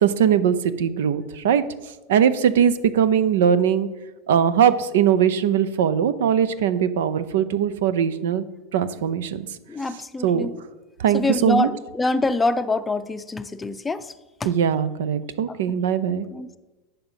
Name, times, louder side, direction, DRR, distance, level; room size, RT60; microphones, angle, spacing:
voice 1, 0.0-1.6 2.1-3.9 4.3-8.4 8.7-9.5 10.2-10.5 11.0-11.7 14.4-16.3, right 8 dB, 75° right, 14 dB, 0.6 m, -20 dB
voice 2, 9.7-10.6 11.1-14.1 14.4-14.5 15.5-15.6 16.3-16.6, left 3 dB, 15° left, 12 dB, 0.5 m, -25 dB
9.0 x 6.8 x 5.7 m, 1.1 s
hypercardioid pair, 105°, 0 cm